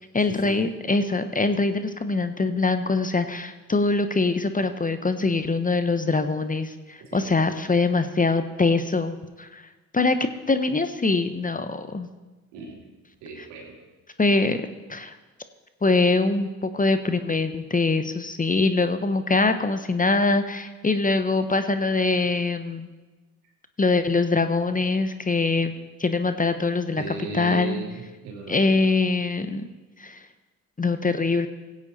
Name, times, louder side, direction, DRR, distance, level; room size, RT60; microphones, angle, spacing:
voice 1, 0.1-9.6 9.9-10.2 10.5-12.1 13.4-13.5 14.2-15.2 15.8-22.9 23.8-27.8 28.5-29.6 30.0-30.2 30.8-31.5, left 3 dB, 20° left, 10 dB, 0.9 m, -23 dB
voice 2, 12.5-12.8 13.2-13.7 27.0-28.9, right 5 dB, 80° right, 0 dB, 2.6 m, -36 dB
16.0 x 8.4 x 4.2 m, 1.2 s
hypercardioid pair, 50°, 40 cm